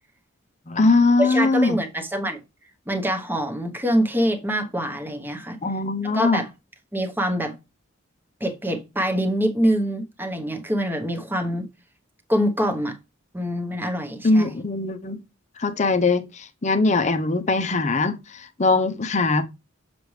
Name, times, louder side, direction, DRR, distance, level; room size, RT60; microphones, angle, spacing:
voice 1, 0.7-1.8 5.6-6.4 14.2-15.2 15.6-16.3 16.6-18.1 18.6-19.5, left 3 dB, 35° left, 0.7 m, -20 dB
voice 2, 1.2-2.4 2.9-5.6 6.0-6.5 6.9-7.6 8.4-11.7 12.3-12.9 13.3-14.5, equal, 10° right, 0.9 m, -25 dB
6.7 x 6.0 x 3.2 m
head